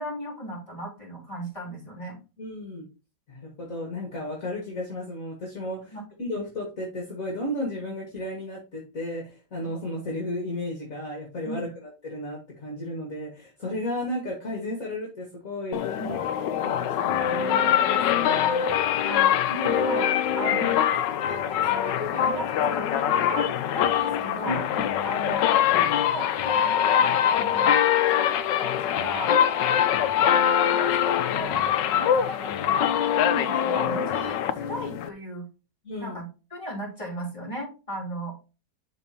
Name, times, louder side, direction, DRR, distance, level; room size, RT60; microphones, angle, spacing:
voice 1, 0.0-2.2 5.9-6.0 11.4-11.6 16.0-16.1 19.0-24.6 25.0-25.5 25.9-27.8 28.1-29.4 30.2-31.6 32.0-35.4 36.0-36.2 36.5-38.3, equal, 15° left, -4 dB, 3.9 m, -36 dB
voice 2, 2.4-2.9 3.3-18.7 24.5-24.6 35.8-36.2, left 1 dB, 50° left, -1 dB, 2.3 m, -34 dB
sound 1, 15.7-35.1, left 9 dB, 80° left, 1.3 m, -23 dB
11.5 x 4.1 x 2.9 m, 0.31 s
omnidirectional pair, 1.9 m